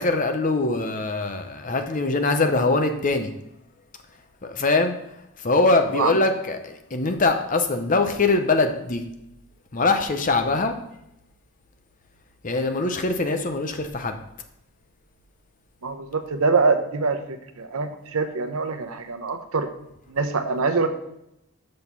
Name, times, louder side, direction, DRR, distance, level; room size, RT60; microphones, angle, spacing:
voice 1, 0.0-3.3 4.4-5.0 5.4-9.0 9.7-10.8 12.4-14.2, left 3 dB, 35° left, 7 dB, 0.7 m, -22 dB
voice 2, 15.8-19.7 20.1-20.9, right 4 dB, 80° right, 8 dB, 0.8 m, -24 dB
6.4 x 5.3 x 5.8 m, 0.81 s
head